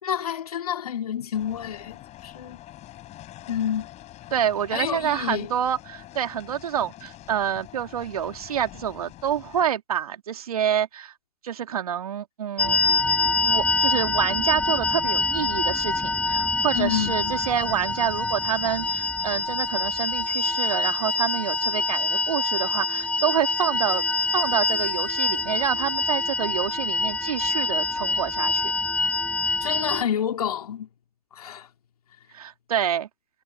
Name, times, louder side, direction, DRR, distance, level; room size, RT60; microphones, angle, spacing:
voice 1, 0.0-2.6 3.5-3.9 4.7-5.5 16.7-17.3 29.6-30.9 31.3-31.7, left 9 dB, 75° left, 2.5 m, -29 dB
sound 1, 1.3-9.6, left 14 dB, 35° left, 7.3 m, -45 dB
voice 2, 4.3-11.1 11.4-12.8 13.4-24.0 24.3-28.7 32.3-33.1, right 9 dB, 75° right, 2.5 m, -27 dB
sound 2, 12.6-30.0, left 3 dB, 5° left, 0.8 m, -25 dB
hypercardioid pair, 100°, 19 cm